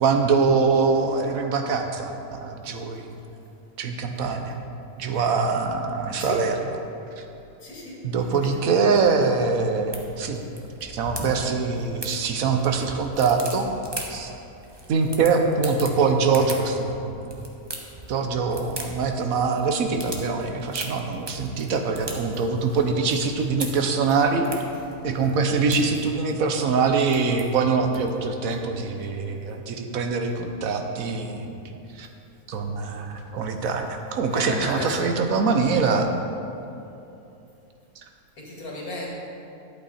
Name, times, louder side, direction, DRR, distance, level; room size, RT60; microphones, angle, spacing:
voice 1, 0.0-3.1 3.8-4.6 5.0-6.8 7.2-7.3 8.0-10.4 10.8-13.7 14.1-14.3 14.9-17.1 18.1-24.5 25.0-31.6 32.0-32.1 32.5-36.1, right 4 dB, 75° right, 5 dB, 1.3 m, -23 dB
voice 2, 7.6-8.7 22.6-22.8 34.3-35.1 38.4-39.1, left 2 dB, 85° left, -3 dB, 2.5 m, -35 dB
sound 1, 8.9-28.3, right 2 dB, 20° right, 0.9 m, -41 dB
11.5 x 8.3 x 4.2 m, 2.8 s
omnidirectional pair, 1.5 m